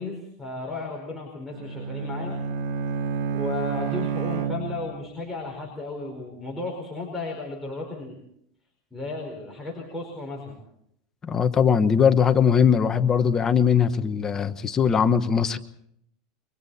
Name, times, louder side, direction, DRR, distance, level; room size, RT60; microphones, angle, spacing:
voice 1, 0.0-2.4 3.3-8.2 8.9-10.6, left 3 dB, ahead, 4.8 m, -34 dB
Bowed string instrument, 1.5-5.1, right 7 dB, 55° right, 1.6 m, -29 dB
voice 2, 11.2-15.6, left 7 dB, 20° left, 1.1 m, -20 dB
29.5 x 24.5 x 4.2 m
supercardioid pair, 150°, 3 cm